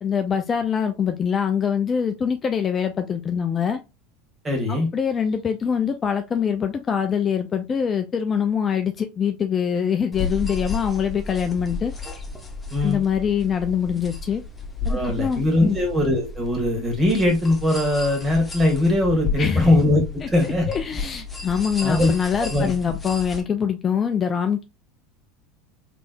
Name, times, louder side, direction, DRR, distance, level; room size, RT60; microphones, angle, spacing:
voice 1, 0.0-3.8 4.7-11.9 12.8-14.4 14.9-15.8 19.4-19.7 20.4-24.6, left 7 dB, 30° left, 0.5 m, -24 dB
voice 2, 4.4-4.9 12.7-13.0 14.9-20.7 21.8-22.1 22.5-22.7, left 1 dB, 20° right, 2.2 m, -21 dB
sound 1, 10.1-23.4, left 4 dB, 15° left, 1.1 m, -33 dB
3.4 x 3.4 x 2.6 m
hypercardioid pair, 85°, 0 cm